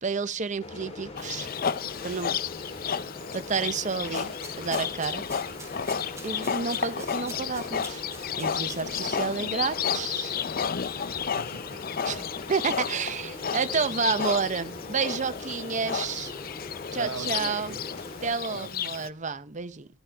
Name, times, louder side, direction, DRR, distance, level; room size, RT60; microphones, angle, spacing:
voice 1, 0.0-1.5 2.0-2.4 3.3-5.2 6.2-8.0 8.4-10.4 12.0-16.3 16.9-17.7 18.2-19.9, right 5 dB, 40° right, 0.7 m, -30 dB
sound 1, 0.6-18.3, left 2 dB, 30° left, 2.6 m, -41 dB
Livestock farm animals working animals, 1.2-19.1, left 7 dB, 50° left, 0.5 m, -32 dB
sound 2, 4.1-9.4, right 3 dB, 15° right, 1.8 m, -48 dB
voice 2, 11.1-12.0 16.9-18.2 18.5-18.7, right 5 dB, 85° right, 0.9 m, -41 dB
16.0 x 10.0 x 3.4 m
head